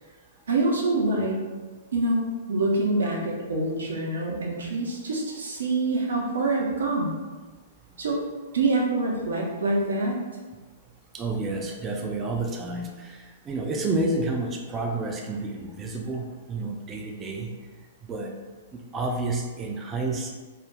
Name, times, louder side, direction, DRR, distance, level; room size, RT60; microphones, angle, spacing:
voice 1, 0.5-1.4 1.9-2.2 2.5-7.1 8.0-8.2 8.5-10.2, right 2 dB, 75° right, -2 dB, 0.6 m, -25 dB
voice 2, 11.1-17.5 18.1-18.4 18.7-20.3, right 2 dB, 20° right, 1 dB, 0.3 m, -30 dB
2.3 x 2.1 x 3.3 m, 1.3 s
figure-of-eight pair, 110°, 0 cm